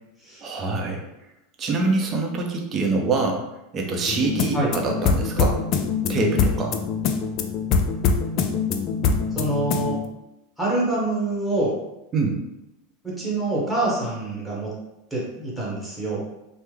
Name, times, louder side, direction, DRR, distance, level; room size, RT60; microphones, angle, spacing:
voice 1, 0.4-1.0 1.6-3.4 3.7-5.6 6.1-6.8 12.1-12.4, right 3 dB, 30° right, 1 dB, 0.6 m, -24 dB
sound 1, 4.1-10.0, left 5 dB, 45° left, 0.3 m, -24 dB
voice 2, 9.3-10.0 10.6-11.7 13.0-14.7 15.1-16.2, right 2 dB, ahead, -6 dB, 1.2 m, -25 dB
3.4 x 2.1 x 3.2 m, 0.92 s
supercardioid pair, 135°, 0 cm